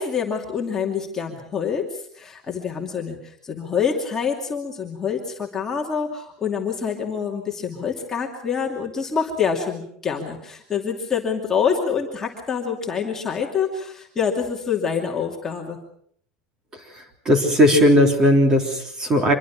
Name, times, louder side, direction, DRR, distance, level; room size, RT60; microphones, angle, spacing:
voice 1, 0.0-15.8, left 6 dB, 15° left, -1 dB, 2.6 m, -26 dB
voice 2, 17.2-19.3, equal, 15° right, 4 dB, 3.3 m, -17 dB
25.5 x 23.0 x 6.1 m, 0.65 s
cardioid pair, 180°, 4 cm